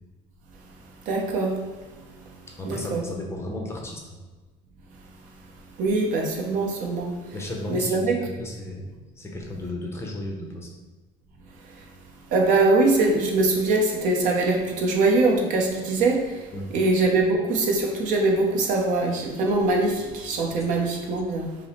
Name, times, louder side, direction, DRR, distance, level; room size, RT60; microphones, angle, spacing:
voice 1, 1.0-1.7 2.6-3.0 5.8-7.2 7.7-8.2 11.7-11.8 12.3-21.6, right 2 dB, 55° right, 0 dB, 0.9 m, -23 dB
voice 2, 2.5-4.2 7.3-10.7 16.5-16.8, left 1 dB, 15° left, 0 dB, 0.6 m, -34 dB
5.4 x 2.1 x 4.2 m, 1.3 s
cardioid pair, 140°, 16 cm